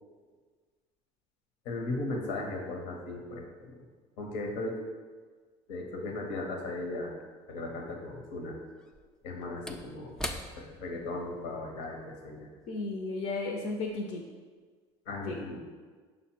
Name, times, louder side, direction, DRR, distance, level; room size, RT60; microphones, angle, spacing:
voice 1, 1.6-3.8 4.2-4.8 5.7-7.1 7.5-8.5 9.2-10.1 10.6-12.5 15.1-15.6, left 2 dB, 80° left, 1 dB, 0.9 m, -37 dB
Slam / Wood, 7.2-7.3 8.8-13.5 13.8-13.9, left 1 dB, 5° left, 0.4 m, -44 dB
voice 2, 12.7-14.2 15.3-15.4, left 3 dB, 55° left, 1 dB, 0.6 m, -34 dB
5.3 x 2.1 x 4.4 m, 1.5 s
supercardioid pair, 80°, 14 cm